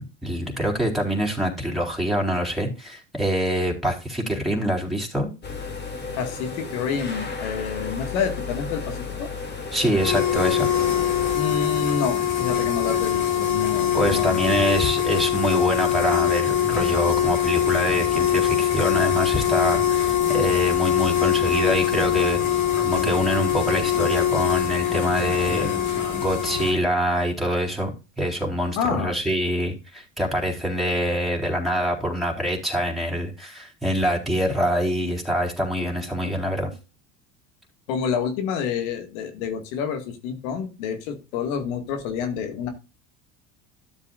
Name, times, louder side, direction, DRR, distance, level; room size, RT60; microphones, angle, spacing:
voice 1, 0.0-5.3 9.7-10.7 13.9-22.4 22.8-27.9 28.2-36.7, equal, ahead, -1 dB, 4.1 m, -25 dB
sound 1, 5.4-11.4, left 4 dB, 25° left, 2.8 m, -33 dB
voice 2, 6.2-9.3 11.3-14.4 28.8-29.1 37.9-42.7, left 6 dB, 75° left, 7 dB, 2.1 m, -28 dB
sound 2, 9.9-26.7, left 10 dB, 50° left, 4.1 m, -23 dB
13.0 x 7.5 x 2.5 m, 0.30 s
supercardioid pair, 90°, 40 cm